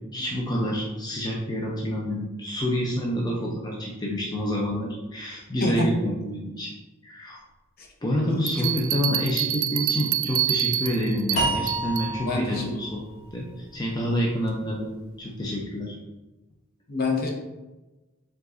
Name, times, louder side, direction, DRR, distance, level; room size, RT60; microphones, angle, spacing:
voice 1, 0.1-6.7 7.0-7.4 8.0-13.0 13.3-14.9 15.2-16.0, equal, 20° left, -3 dB, 0.5 m, -28 dB
voice 2, 5.6-5.9 7.8-7.9 8.3-8.7 12.2-12.6 16.9-17.3, left 2 dB, 50° left, 0 dB, 0.8 m, -27 dB
sound 1, 8.5-12.1, right 11 dB, 90° right, 0.3 m, -27 dB
sound 2, 11.4-14.5, right 1 dB, 70° left, 1.3 m, -31 dB
4.8 x 3.8 x 2.6 m, 1.1 s
head